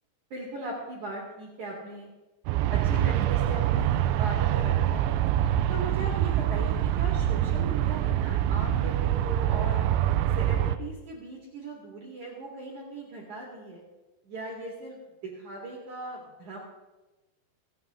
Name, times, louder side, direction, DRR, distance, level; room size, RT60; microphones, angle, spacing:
voice 1, 0.3-2.1 2.7-5.1 5.7-9.8 10.3-13.8 14.2-16.6, right 2 dB, 50° right, -2 dB, 3.2 m, -38 dB
Aircraft, 2.5-10.8, right 11 dB, 85° right, 2.9 m, -25 dB
27.5 x 9.2 x 3.7 m, 1.1 s
omnidirectional pair, 5.1 m